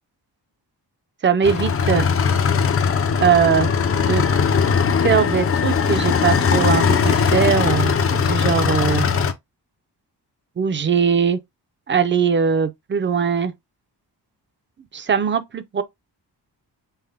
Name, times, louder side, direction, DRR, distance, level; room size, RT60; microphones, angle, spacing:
voice 1, 1.2-2.1 3.2-3.7 4.1-4.2 5.0-9.1 10.6-11.4 11.9-13.5 14.9-15.8, right 6 dB, 30° right, 0.4 m, -20 dB
sound 1, 1.4-9.3, left 6 dB, 35° left, 0.4 m, -19 dB
5.6 x 2.1 x 3.4 m
wide cardioid pair, 180°, 41 cm